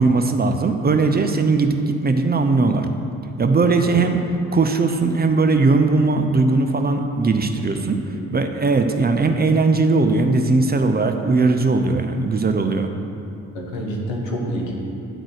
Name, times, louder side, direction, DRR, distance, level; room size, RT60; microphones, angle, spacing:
voice 1, 0.0-2.9 3.4-4.2 4.5-8.0 8.3-12.9, right 3 dB, 25° right, 6 dB, 0.7 m, -19 dB
voice 2, 3.6-4.0 7.7-7.9 8.1-8.3 13.5-14.7, equal, 80° left, -1 dB, 1.3 m, -28 dB
10.0 x 4.0 x 6.4 m, 2.7 s
hypercardioid pair, 45°, 39 cm